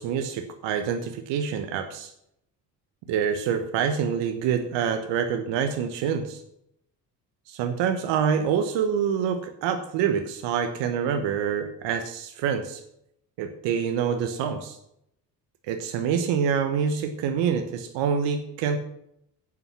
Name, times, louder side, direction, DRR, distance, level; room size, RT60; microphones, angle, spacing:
voice 1, 0.0-2.1 3.1-6.4 7.5-12.8 13.4-14.8 15.7-18.8, right 7 dB, 60° right, 8 dB, 1.2 m, -26 dB
11.0 x 8.6 x 5.8 m, 0.76 s
figure-of-eight pair, 50°, 49 cm